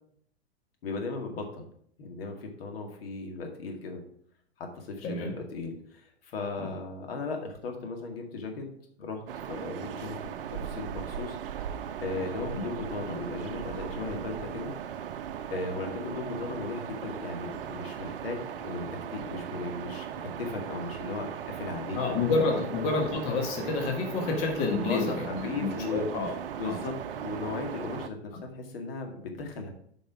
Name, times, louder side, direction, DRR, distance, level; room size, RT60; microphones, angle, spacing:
voice 1, 0.8-1.7 2.0-4.0 4.6-8.7 9.0-9.2 9.5-10.2 10.5-11.7 12.0-14.7 15.5-18.9 19.1-20.1 20.4-22.0 22.5-22.6 24.7-26.1 26.6-29.7, left 3 dB, 60° left, 3 dB, 2.1 m, -36 dB
voice 2, 5.0-5.3 6.6-6.7 21.9-26.4 26.6-26.8, left 3 dB, 40° left, 2 dB, 1.8 m, -29 dB
sound 1, 9.3-28.1, right 9 dB, 60° right, 0.7 m, -38 dB
9.0 x 5.3 x 4.9 m, 0.66 s
figure-of-eight pair, 100°, 32 cm